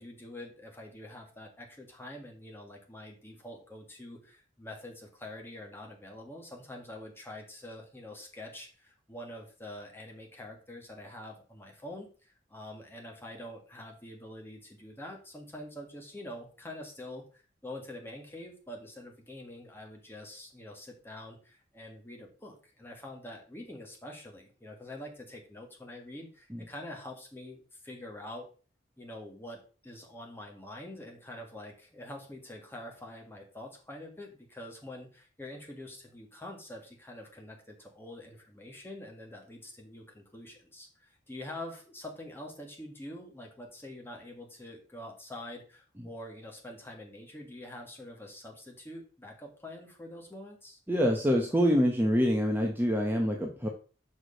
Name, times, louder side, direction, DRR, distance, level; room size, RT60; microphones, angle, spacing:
voice 1, 0.0-28.5 29.0-50.8, left 1 dB, 15° left, 0 dB, 1.8 m, -45 dB
voice 2, 50.9-53.7, equal, 10° right, 1 dB, 0.9 m, -26 dB
6.4 x 4.9 x 5.0 m, 0.37 s
head